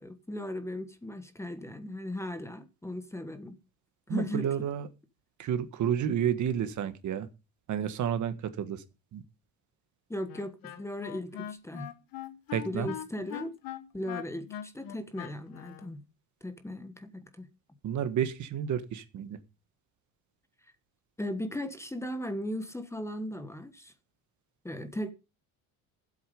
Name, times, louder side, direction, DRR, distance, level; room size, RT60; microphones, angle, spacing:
voice 1, 0.0-3.6 4.1-4.5 10.1-11.9 12.6-13.5 13.9-16.0 16.4-17.5 21.2-23.9 24.6-25.1, left 1 dB, 5° left, 1.3 m, -37 dB
voice 2, 4.1-4.9 5.4-7.3 7.7-8.8 9.1-9.2 12.5-12.9 17.8-19.4, right 9 dB, 50° right, 1.6 m, -30 dB
Wind instrument woodwind instrument, 10.3-15.9, left 11 dB, 65° left, 1.4 m, -41 dB
14.0 x 8.2 x 5.3 m
cardioid pair, 125°, 37 cm